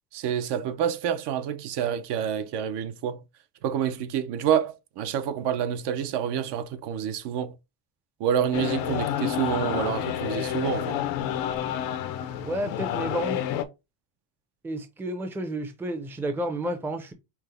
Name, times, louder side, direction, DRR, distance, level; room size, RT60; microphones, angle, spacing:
voice 1, 0.1-3.2 3.6-7.5 8.2-11.0, right 9 dB, 65° right, 0.6 m, -28 dB
sound 1, 8.5-13.6, left 11 dB, 85° left, 0.7 m, -29 dB
voice 2, 12.4-13.4 14.6-17.1, right 1 dB, 5° right, 0.5 m, -31 dB
5.7 x 2.0 x 3.2 m
cardioid pair, 145°, 45 cm